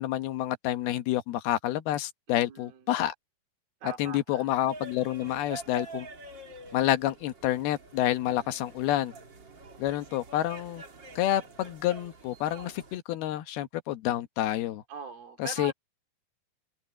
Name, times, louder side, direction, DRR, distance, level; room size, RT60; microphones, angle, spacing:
voice 1, 0.0-3.1 3.8-6.1 6.7-9.1 9.8-10.8 11.2-14.8 15.4-15.7, left 13 dB, 75° left, 2.9 m, -29 dB
voice 2, 2.3-2.8 3.8-4.5 8.3-8.6 14.9-15.7, right 7 dB, 65° right, 4.2 m, -42 dB
sound 1, 4.5-13.0, right 3 dB, 30° right, 2.6 m, -47 dB
open air
omnidirectional pair, 4.8 m